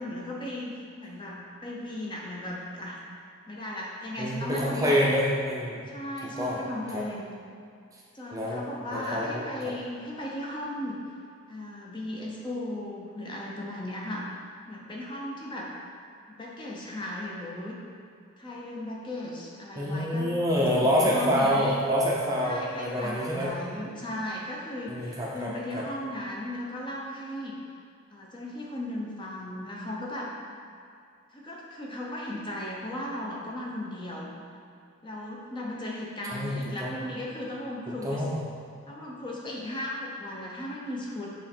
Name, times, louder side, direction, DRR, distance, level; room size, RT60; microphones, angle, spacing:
voice 1, 0.0-3.0 3.5-5.1 5.9-7.3 8.1-11.0 11.5-14.3 14.7-15.7 16.3-17.8 18.4-20.3 20.6-21.8 22.4-27.6 28.1-30.3 31.3-34.3 35.0-38.2 38.9-41.3, left 1 dB, 20° left, -3 dB, 0.7 m, -36 dB
voice 2, 4.2-5.8 6.4-6.6 6.9-7.0 8.3-8.6 8.9-9.5 19.8-23.5 24.9-25.8 36.3-37.0 38.0-38.4, equal, 15° right, -4 dB, 0.6 m, -27 dB
7.5 x 3.2 x 4.4 m, 2.4 s
head